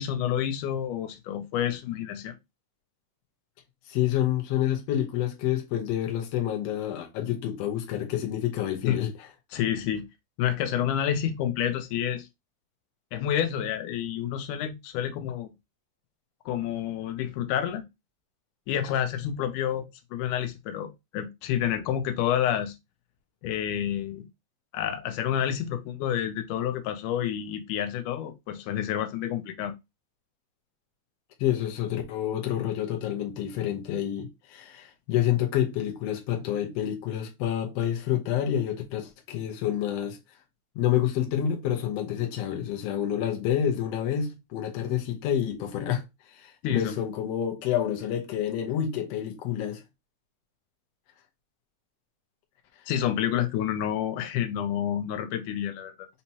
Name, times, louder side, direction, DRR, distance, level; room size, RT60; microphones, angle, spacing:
voice 1, 0.0-2.4 8.8-9.0 9.5-10.1 10.4-12.3 13.1-15.5 16.5-17.8 18.7-22.8 23.4-24.2 24.7-29.7 46.6-47.0 52.9-56.1, left 10 dB, 90° left, 2.2 m, -29 dB
voice 2, 3.9-9.1 31.4-40.2 40.7-46.0 46.3-49.8, left 10 dB, 65° left, 1.8 m, -28 dB
5.4 x 3.0 x 2.8 m
omnidirectional pair, 3.5 m